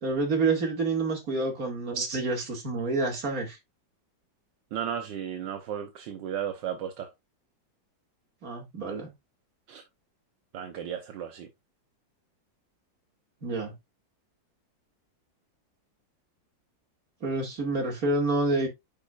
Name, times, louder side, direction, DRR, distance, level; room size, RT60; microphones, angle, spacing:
voice 1, 0.0-3.6 8.4-9.1 13.4-13.7 17.2-18.7, right 3 dB, 50° right, 2.7 m, -28 dB
voice 2, 4.7-7.1 9.7-9.8 10.5-11.5, right 9 dB, 75° right, 1.5 m, -34 dB
8.9 x 5.4 x 2.4 m
omnidirectional pair, 2.0 m